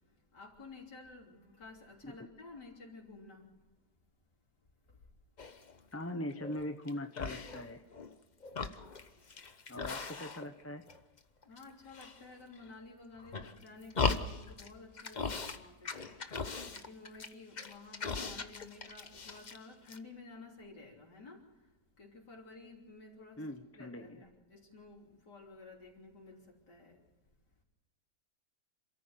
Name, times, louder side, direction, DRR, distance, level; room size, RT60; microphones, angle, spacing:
voice 1, 0.3-3.5 11.4-16.1 16.7-21.4 22.0-23.4 23.7-27.0, left 3 dB, 80° left, -2 dB, 3.9 m, -52 dB
sound 1, 5.4-5.8 6.3-6.9 7.2-8.1 8.4-10.6 10.9-11.6 11.9-12.7 13.2-14.7 15.0-15.6 15.8-19.6 19.9-20.0, left 4 dB, 30° left, 0.9 m, -38 dB
voice 2, 5.9-7.8 9.7-10.8 18.3-18.5 23.4-24.2, left 1 dB, 10° left, 6 dB, 0.8 m, -41 dB
27.5 x 14.0 x 8.0 m, 1.1 s
omnidirectional pair, 1.8 m